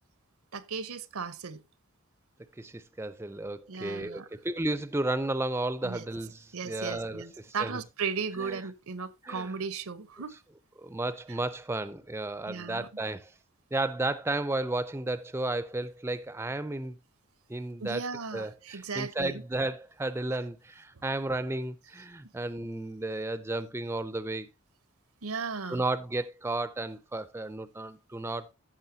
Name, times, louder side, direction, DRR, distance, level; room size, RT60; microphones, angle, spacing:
voice 1, 0.5-1.6 3.7-4.3 5.8-6.0 6.5-10.4 12.5-12.9 17.8-19.4 25.2-25.8, right 5 dB, 80° right, 0.8 m, -36 dB
voice 2, 2.6-7.8 8.4-8.6 9.2-9.5 10.8-13.3 13.7-17.0 17.5-18.0 18.3-24.5 25.7-28.5, right 2 dB, 10° right, 0.4 m, -33 dB
14.5 x 6.3 x 2.7 m
head